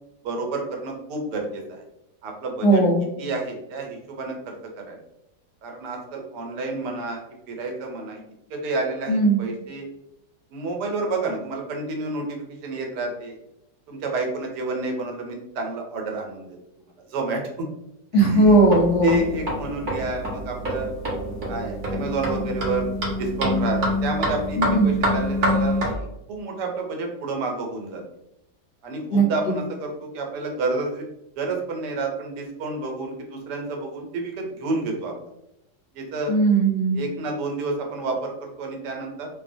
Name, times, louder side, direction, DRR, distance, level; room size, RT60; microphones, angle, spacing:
voice 1, 0.2-1.8 2.2-2.8 3.2-4.6 4.9-5.0 5.6-7.2 7.5-8.2 8.5-9.9 10.5-13.4 13.9-16.6 17.1-17.7 18.1-18.6 19.0-20.9 21.5-22.9 23.2-28.0 28.8-31.1 31.4-35.2 35.9-36.3 36.9-39.3, right 2 dB, 80° right, 1 dB, 1.2 m, -29 dB
voice 2, 2.6-3.0 9.1-9.4 18.1-19.2 24.6-25.0 29.1-29.2 36.3-37.0, right 2 dB, 65° left, -2 dB, 0.8 m, -18 dB
sound 1, 18.4-25.9, equal, 65° right, 0.5 m, -26 dB
2.7 x 2.1 x 2.5 m, 0.86 s
omnidirectional pair, 1.8 m